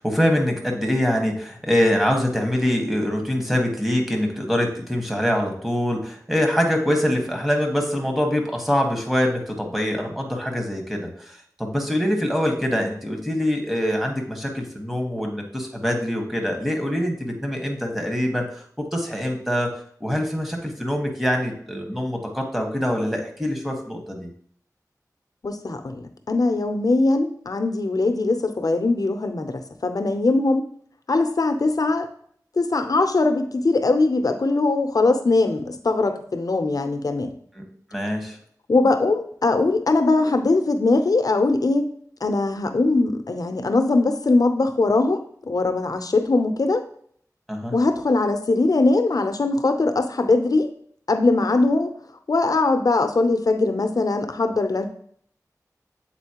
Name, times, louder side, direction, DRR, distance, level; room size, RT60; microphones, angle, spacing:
voice 1, 0.0-19.7 20.0-24.3 37.6-37.7 37.9-38.4 47.5-47.7, equal, 5° right, 2 dB, 1.3 m, -24 dB
voice 2, 25.4-30.7 31.1-32.1 32.6-37.3 38.7-41.9 42.2-46.8 47.7-50.7 51.1-51.9 52.3-54.9, left 3 dB, 65° left, 7 dB, 0.6 m, -21 dB
7.9 x 4.1 x 2.9 m, 0.62 s
wide cardioid pair, 65°, 7 cm